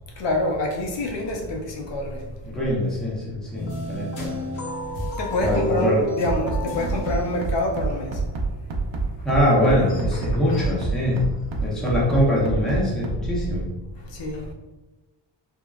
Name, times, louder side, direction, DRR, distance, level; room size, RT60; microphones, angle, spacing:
voice 1, 0.2-2.2 5.2-8.2 10.5-10.7 14.0-14.5, left 1 dB, 70° left, 1 dB, 0.6 m, -27 dB
voice 2, 2.4-4.4 5.4-6.1 9.2-11.2 11.6-13.7, equal, ahead, -6 dB, 0.6 m, -23 dB
sound 1, 3.5-8.1, left 2 dB, 90° left, 1.0 m, -32 dB
Bass drum, 6.2-13.6, right 4 dB, 70° right, 0.6 m, -26 dB
3.6 x 2.1 x 2.3 m, 1.1 s
wide cardioid pair, 155°, 45 cm